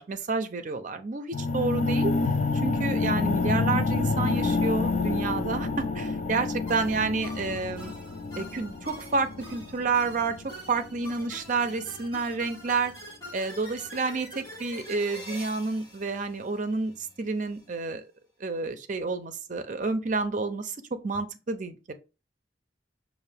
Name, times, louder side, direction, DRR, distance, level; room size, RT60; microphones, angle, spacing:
voice 1, 0.0-2.1 2.6-7.9 8.4-10.3 10.7-12.9 13.3-16.9 17.2-18.0 18.4-20.7 21.0-21.9, right 4 dB, 45° right, 0.5 m, -29 dB
sound 1, 1.3-11.3, left 3 dB, 40° left, 0.3 m, -28 dB
sound 2, 6.7-17.1, equal, 25° left, 1.7 m, -45 dB
5.8 x 2.5 x 3.3 m
head